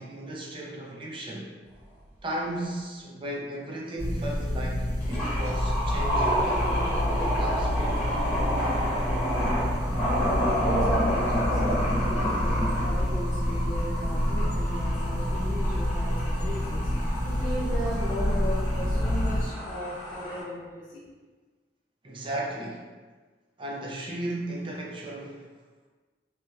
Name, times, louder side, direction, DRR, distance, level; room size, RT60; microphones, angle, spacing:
voice 1, 0.0-1.5 2.2-6.7 7.3-8.0 22.0-22.9 23.6-25.4, right 1 dB, 30° right, -2 dB, 0.5 m, -35 dB
sound 1, 2.0-2.1 5.0-20.4, equal, 10° left, 1.1 m, -30 dB
sound 2, 4.0-19.5, left 1 dB, 70° right, 1.3 m, -28 dB
voice 2, 10.2-20.9, equal, 30° left, -13 dB, 0.7 m, -36 dB
3.0 x 2.9 x 2.3 m, 1.4 s
head